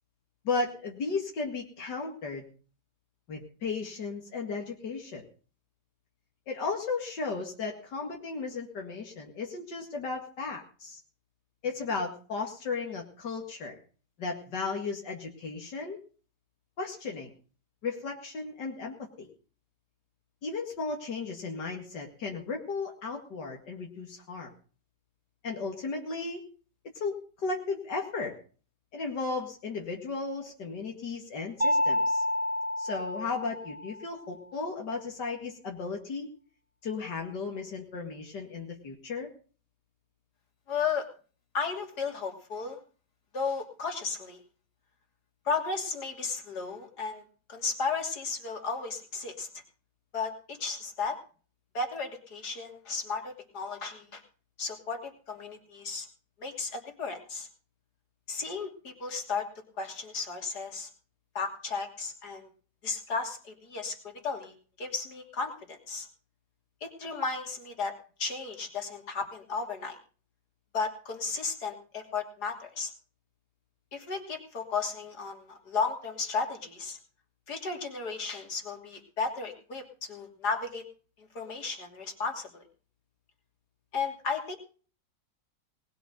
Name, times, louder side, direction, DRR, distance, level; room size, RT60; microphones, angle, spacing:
voice 1, 0.4-2.5 3.3-5.2 6.5-11.0 11.6-13.8 14.2-16.0 16.8-17.3 17.8-19.3 20.4-24.5 25.4-26.4 26.9-28.3 28.9-32.2 32.8-36.3 36.8-39.3, left 4 dB, 90° left, 1 dB, 2.8 m, -35 dB
Mallet percussion, 31.6-34.1, left 1 dB, 25° right, 1.0 m, -29 dB
voice 2, 40.7-41.1 41.5-42.8 43.3-44.4 45.4-47.2 47.5-49.5 50.1-51.2 51.7-54.2 54.6-56.1 56.4-57.5 58.3-59.5 59.8-60.9 61.3-62.5 62.8-63.9 64.2-66.1 66.8-67.9 68.2-70.0 70.7-72.9 73.9-77.0 77.5-80.8 81.2-82.6 83.9-84.6, left 4 dB, 70° left, 4 dB, 3.5 m, -34 dB
19.5 x 7.9 x 6.6 m, 0.40 s
omnidirectional pair, 1.8 m